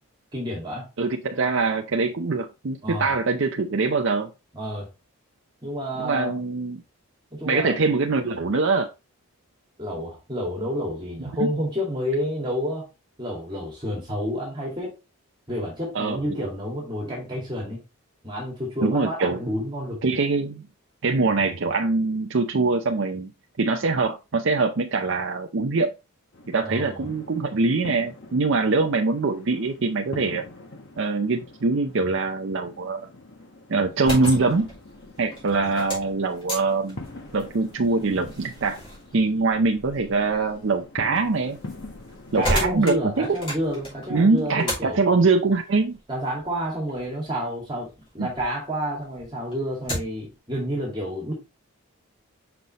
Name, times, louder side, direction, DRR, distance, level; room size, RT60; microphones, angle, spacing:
voice 1, 0.3-0.9 2.8-3.1 4.5-4.9 5.6-6.4 7.3-7.8 9.8-12.9 13.2-14.9 15.5-17.8 18.2-20.0 26.6-27.1 42.3-45.0 46.1-51.3, equal, 20° right, 2.3 m, -29 dB
voice 2, 1.0-4.3 6.0-6.8 7.4-8.9 11.4-11.5 15.9-16.5 18.8-19.4 20.0-20.7 21.0-23.3 23.6-25.9 26.5-30.5 31.0-33.1 33.7-34.7 35.2-37.0 37.3-38.8 39.1-41.6 42.3-43.4 44.1-46.0 48.2-48.3, right 3 dB, 55° right, 0.5 m, -23 dB
sound 1, 26.3-44.1, left 2 dB, 50° left, 1.1 m, -44 dB
sound 2, 33.8-48.5 48.9-50.3, equal, 25° left, 3.1 m, -35 dB
5.9 x 5.4 x 2.9 m
head